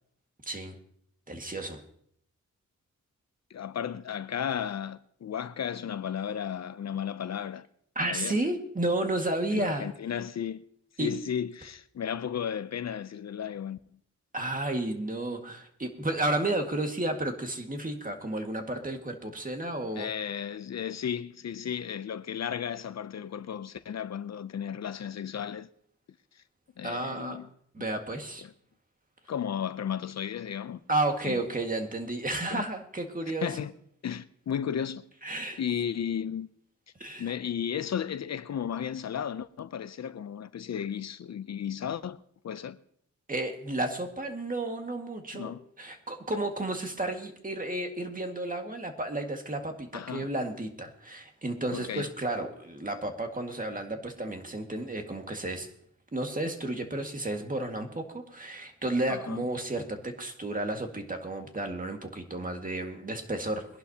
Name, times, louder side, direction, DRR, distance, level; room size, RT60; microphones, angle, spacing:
voice 1, 1.3-1.8 8.0-9.9 11.0-11.1 14.3-20.1 26.8-27.4 27.7-28.5 30.9-33.5 35.2-35.6 37.0-37.3 43.3-55.7 56.1-63.7, right 2 dB, 30° right, 1.9 m, -32 dB
voice 2, 3.5-7.7 8.1-8.4 9.5-10.6 11.0-13.8 19.9-25.7 26.8-27.5 28.4-28.5 29.3-30.8 31.2-31.4 32.5-32.7 33.3-33.7 34.0-35.0 35.6-36.5 37.2-42.8 45.3-45.6 49.9-50.3 51.7-52.1 59.1-59.5, left 8 dB, 60° left, 0.5 m, -34 dB
22.0 x 11.5 x 2.8 m
wide cardioid pair, 90°, 30 cm